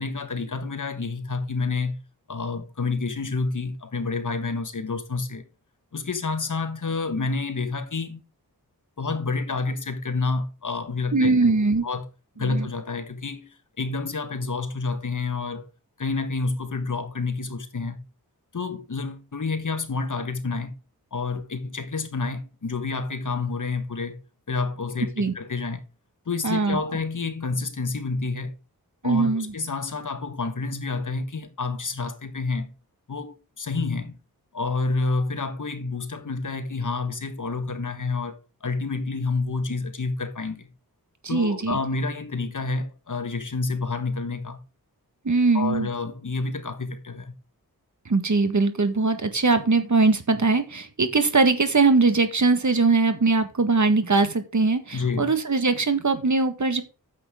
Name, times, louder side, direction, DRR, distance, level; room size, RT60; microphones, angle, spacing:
voice 1, 0.0-2.0 2.3-5.4 5.9-8.2 9.0-11.5 11.8-12.1 12.4-15.7 16.0-18.0 18.5-20.7 21.1-24.2 24.5-25.8 26.2-28.5 29.0-32.7 33.1-34.2 34.5-40.7 41.3-44.6 45.5-47.3 54.9-55.2, left 3 dB, 55° left, 1.5 m, -29 dB
voice 2, 11.1-11.9 12.4-12.7 25.2-25.3 26.4-26.9 29.0-29.5 41.2-41.8 45.2-45.9 48.0-56.8, right 3 dB, 50° right, 1.7 m, -21 dB
9.5 x 7.7 x 3.7 m
cardioid pair, 50°, 37 cm